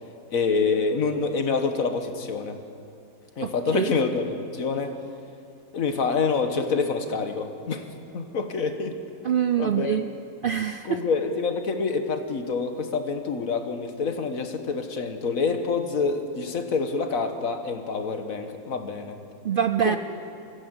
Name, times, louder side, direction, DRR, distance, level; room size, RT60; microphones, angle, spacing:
voice 1, 0.3-2.6 3.4-5.0 5.7-7.8 8.1-9.0 9.6-10.0 10.8-19.2 19.8-20.0, left 4 dB, 60° left, 7 dB, 1.8 m, -27 dB
voice 2, 3.4-3.9 9.2-10.1 10.4-11.0 19.4-20.0, right 9 dB, 80° right, 9 dB, 0.4 m, -24 dB
22.5 x 15.0 x 8.1 m, 2.6 s
omnidirectional pair, 1.6 m